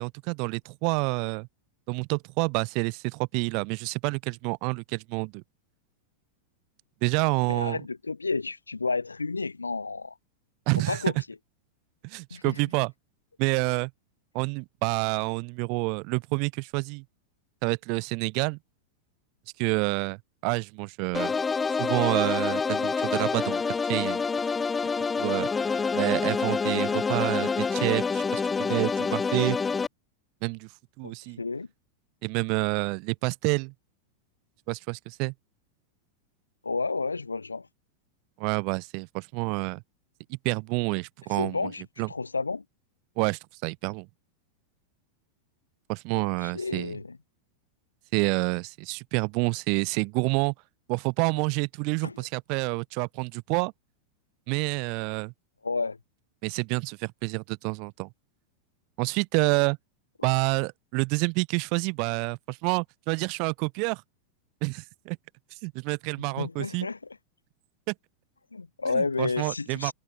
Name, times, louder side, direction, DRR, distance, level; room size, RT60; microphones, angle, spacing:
voice 1, 0.0-1.5 1.9-5.4 7.0-7.8 10.7-11.0 12.0-12.9 13.4-13.9 14.3-17.0 17.6-18.6 19.6-20.2 20.4-21.3 21.8-23.6 23.9-24.2 25.2-25.5 25.9-29.6 30.4-30.7 31.0-31.4 32.2-33.7 34.7-35.3 38.4-39.8 40.3-41.7 42.0-42.1 43.2-44.1 45.9-47.0 48.1-50.5 50.9-53.7 54.5-55.3 56.4-58.1 59.0-59.8 60.2-64.0 64.6-65.2 65.6-66.9 67.9-68.0 68.9-69.9, right 34 dB, 45° right, 3.7 m, -28 dB
voice 2, 7.5-10.1 10.8-11.1 12.3-12.6 31.0-31.7 36.6-37.7 41.4-42.6 46.1-47.2 52.0-52.2 55.6-56.0 60.2-60.3 66.4-67.0 68.5-69.9, left 4 dB, 80° left, 6.4 m, -31 dB
sound 1, 21.1-29.9, left 5 dB, 15° left, 2.7 m, -27 dB
figure-of-eight pair, 90°, 0 cm